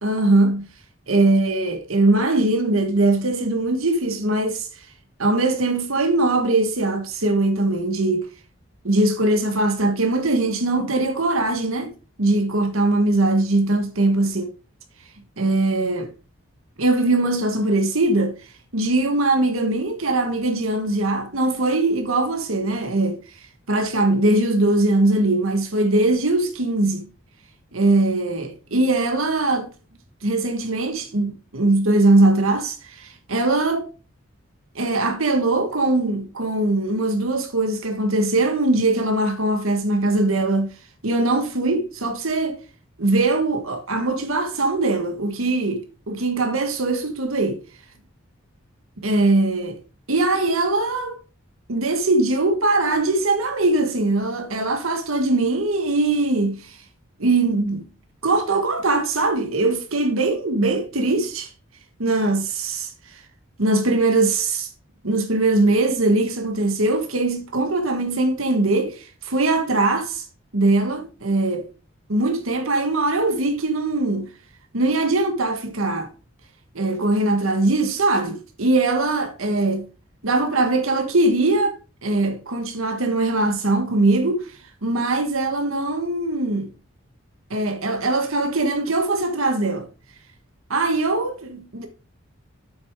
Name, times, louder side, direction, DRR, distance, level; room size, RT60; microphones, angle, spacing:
voice 1, 0.0-0.6 1.1-4.9 5.2-8.3 8.8-11.9 12.2-14.5 15.4-16.1 16.8-18.3 18.7-23.4 23.7-27.1 27.7-29.7 30.2-33.9 34.7-40.7 41.0-42.6 43.0-47.6 49.0-49.8 50.1-51.2 51.7-56.8 57.2-57.8 58.2-61.5 62.0-63.2 63.6-64.7 65.0-70.2 70.5-71.7 72.1-74.3 74.7-76.1 76.7-79.9 80.2-86.7 87.5-89.9 90.7-91.9, right 2 dB, 85° right, 1.5 m, -21 dB
8.1 x 6.4 x 3.6 m
head